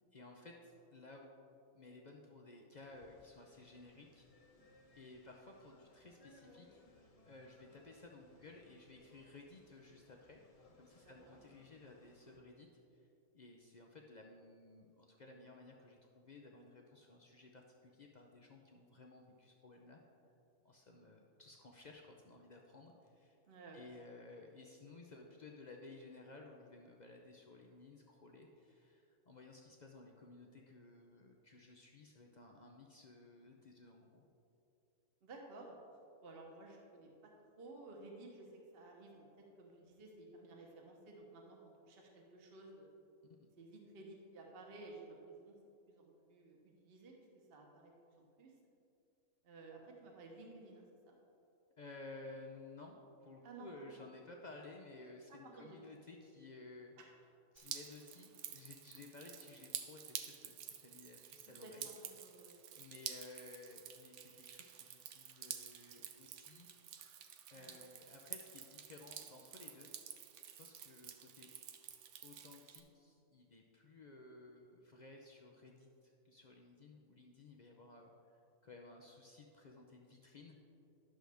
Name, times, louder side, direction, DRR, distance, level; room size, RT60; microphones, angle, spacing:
voice 1, 0.1-1.3 1.7-4.3 4.9-6.8 7.2-10.4 10.8-12.7 12.9-13.1 13.3-20.0 20.6-23.4 23.7-34.3 43.4-43.5 51.8-56.9 57.5-61.9 62.7-66.7 67.5-69.9 70.5-71.5 72.2-78.1 78.6-80.6, left 3 dB, 65° left, 1 dB, 0.4 m, -56 dB
sound 1, 2.8-12.4, left 2 dB, 30° left, 0.7 m, -66 dB
voice 2, 11.0-11.4 20.9-21.2 23.5-23.8 35.2-35.8 36.2-42.9 43.6-45.5 45.9-48.5 49.4-51.2 53.4-54.0 55.3-55.8 57.0-57.1 58.9-59.0 61.6-62.6 67.5-67.8, right 2 dB, 45° right, 0 dB, 1.2 m, -55 dB
Drip, 57.6-72.8, right 9 dB, 65° right, 0.8 m, -50 dB
11.5 x 6.3 x 3.4 m, 2.7 s
omnidirectional pair, 1.6 m